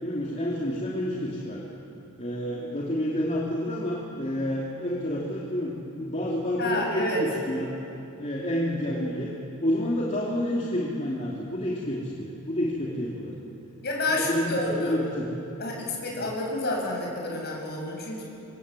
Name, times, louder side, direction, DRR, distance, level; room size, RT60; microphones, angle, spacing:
voice 1, 0.0-1.6 2.2-9.3 9.6-13.3 14.1-15.3 16.1-16.3, left 1 dB, 30° left, -4 dB, 3.1 m, -29 dB
voice 2, 6.6-7.2 13.8-15.0 15.6-18.2, left 1 dB, 50° left, -1 dB, 7.1 m, -29 dB
27.0 x 24.5 x 8.5 m, 2.8 s
head